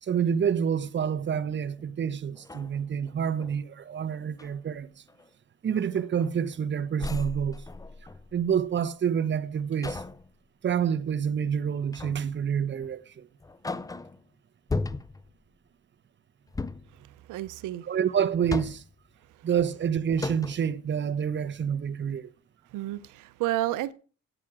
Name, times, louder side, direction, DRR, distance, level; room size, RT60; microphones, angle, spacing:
voice 1, 0.0-4.9 5.6-7.6 8.3-10.0 10.6-13.3 17.8-18.8 19.4-22.3, right 8 dB, 40° right, 0.8 m, -28 dB
sound 1, 1.8-1.9 2.4-3.6 4.1-4.5 5.1-5.3 5.7-6.6 7.0-8.5 9.8-10.3 11.9-12.4 12.8-12.9 13.4-14.2 14.7-15.3 16.5-17.0 18.2-19.0 19.7-19.8 20.2-20.7, left 3 dB, 10° left, 0.5 m, -36 dB
voice 2, 17.3-17.9 22.7-23.9, right 15 dB, 90° right, 0.6 m, -30 dB
9.9 x 8.7 x 5.9 m
cardioid pair, 90°, 30 cm